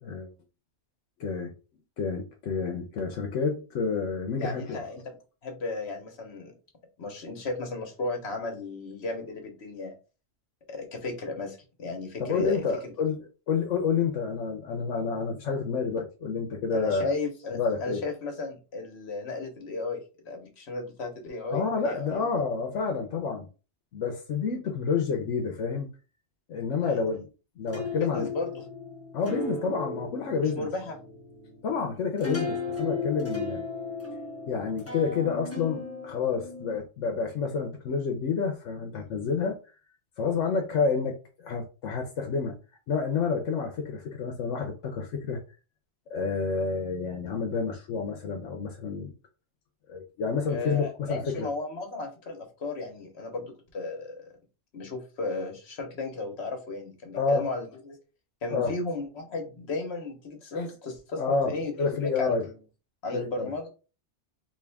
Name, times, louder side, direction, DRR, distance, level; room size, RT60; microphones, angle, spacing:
voice 1, 0.0-0.3 1.2-1.5 2.0-4.8 12.2-17.1 17.5-18.0 21.5-23.5 23.9-25.9 26.5-27.3 27.6-28.3 29.1-30.7 31.6-33.6 34.5-39.6 40.2-42.6 42.9-45.4 46.1-49.1 49.9-51.5 57.1-57.5 58.5-58.7 61.2-62.4 63.1-63.5, left 5 dB, 80° left, 1.0 m, -29 dB
voice 2, 4.4-5.1 5.4-6.5 7.0-10.0 10.7-12.9 16.7-22.2 26.8-27.0 27.9-28.6 30.4-31.0 50.5-54.3 54.7-58.0 58.4-62.5 63.0-63.7, left 3 dB, 65° left, 1.3 m, -35 dB
sound 1, 27.7-36.8, left 3 dB, 15° left, 0.7 m, -36 dB
3.6 x 2.5 x 3.4 m
omnidirectional pair, 1.2 m